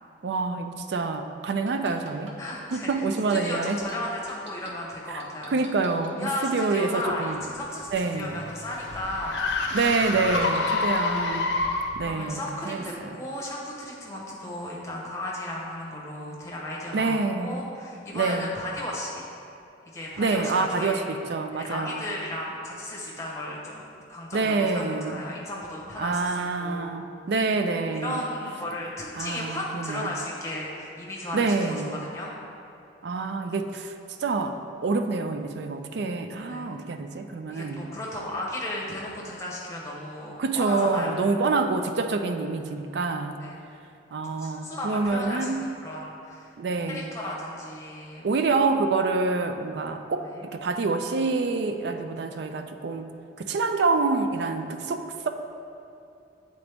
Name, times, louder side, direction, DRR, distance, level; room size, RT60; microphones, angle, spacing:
voice 1, 0.2-2.3 2.7-3.8 5.1-5.2 5.5-7.4 7.9-8.4 9.7-11.7 11.9-13.1 16.9-17.6 18.1-18.5 20.2-22.0 24.3-25.2 26.0-28.2 29.2-30.1 31.3-32.0 33.0-37.8 40.4-43.4 44.1-45.7 46.6-47.1 48.2-55.3, right 3 dB, 60° right, 7 dB, 0.3 m, -27 dB
sound 1, 1.5-4.7 5.2-6.3 6.8-6.9, right 3 dB, 85° right, 0.8 m, -46 dB
voice 2, 2.4-2.9 3.3-5.5 6.2-9.4 10.6-11.4 12.0-19.2 19.9-21.0 21.5-27.0 28.0-32.3 36.5-36.7 37.5-41.2 43.4-43.6 44.4-46.5 46.9-48.3 50.2-50.5, left 1 dB, 15° left, -4 dB, 0.9 m, -35 dB
sound 2, 7.6-12.1, left 3 dB, 65° left, 0.6 m, -28 dB
8.3 x 3.9 x 3.4 m, 2.6 s
head